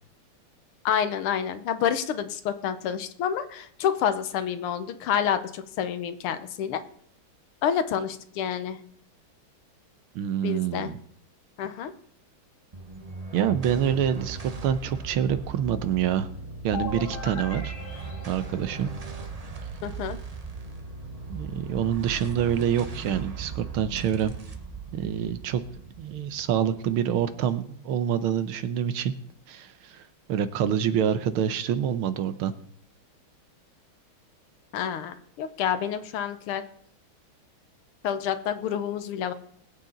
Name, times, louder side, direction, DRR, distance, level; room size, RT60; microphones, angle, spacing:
voice 1, 0.9-6.8 7.6-8.8 10.4-10.9 11.6-11.9 19.8-20.2 34.7-36.6 38.0-39.3, left 8 dB, 85° left, 10 dB, 1.8 m, -28 dB
voice 2, 10.2-11.0 13.3-14.4 14.6-16.3 16.6-17.7 18.3-18.9 21.3-24.3 24.9-25.6 26.0-29.1 29.5-30.0 30.3-32.5, right 9 dB, 80° right, 11 dB, 1.7 m, -26 dB
sound 1, 12.7-27.3, right 4 dB, 40° right, 0.5 m, -38 dB
sound 2, 16.7-19.5, left 4 dB, 70° left, 2.7 m, -39 dB
21.0 x 8.6 x 3.9 m, 0.65 s
omnidirectional pair, 2.3 m